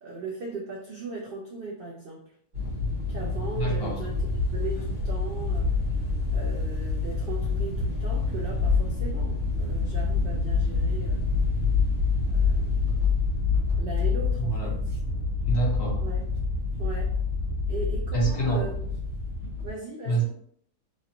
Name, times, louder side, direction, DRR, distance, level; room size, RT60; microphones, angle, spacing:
voice 1, 0.0-2.2 3.1-5.7 6.3-11.2 12.3-13.0 13.8-14.8 16.0-16.2 16.8-17.1 17.7-18.9 19.6-20.2, right 3 dB, 80° right, -2 dB, 0.5 m, -38 dB
sound 1, 2.5-19.7, left 4 dB, 55° right, 1.3 m, -27 dB
voice 2, 3.6-3.9 14.4-14.7 15.4-16.0 18.1-18.7 20.1-20.2, right 3 dB, 60° left, -3 dB, 1.4 m, -26 dB
3.0 x 2.6 x 2.8 m, 0.64 s
omnidirectional pair, 1.7 m